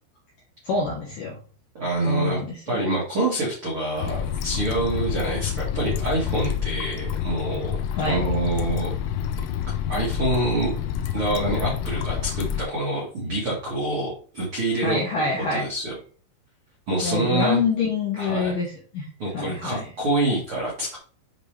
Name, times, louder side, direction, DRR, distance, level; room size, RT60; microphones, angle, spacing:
voice 1, 0.6-1.4 2.0-2.8 8.0-8.3 14.8-15.7 17.0-19.1 19.3-19.9, left 4 dB, 75° left, -2 dB, 1.9 m, -26 dB
voice 2, 1.7-2.4 2.6-8.9 9.9-10.7 11.1-15.9 16.9-17.6 18.2-18.5 19.2-21.0, right 2 dB, 85° right, -4 dB, 1.1 m, -26 dB
sound 1, 4.0-12.7, left 9 dB, 90° left, 3.3 m, -28 dB
9.7 x 3.3 x 3.3 m, 0.42 s
omnidirectional pair, 5.7 m